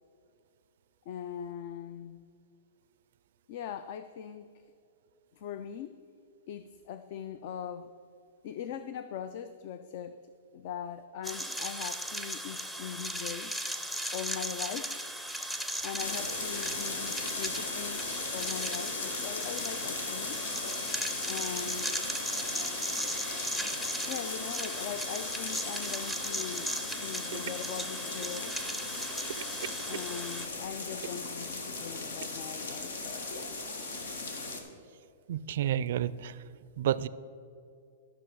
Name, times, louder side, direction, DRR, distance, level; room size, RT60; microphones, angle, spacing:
voice 1, 1.1-2.3 3.5-4.6 5.3-6.0 6.5-8.0 8.4-13.5 14.1-15.1 15.8-18.1 18.3-20.4 21.3-22.0 24.1-28.6 29.9-33.3, left 8 dB, 50° left, 11 dB, 0.4 m, -41 dB
sound 1, 11.2-30.5, equal, 5° left, 0.6 m, -37 dB
sound 2, 16.0-34.6, left 3 dB, 85° left, 1.5 m, -38 dB
voice 2, 35.3-36.4 36.8-37.1, right 11 dB, 65° right, 17 dB, 0.4 m, -30 dB
12.5 x 6.0 x 4.7 m, 2.5 s
hypercardioid pair, 150°, 0 cm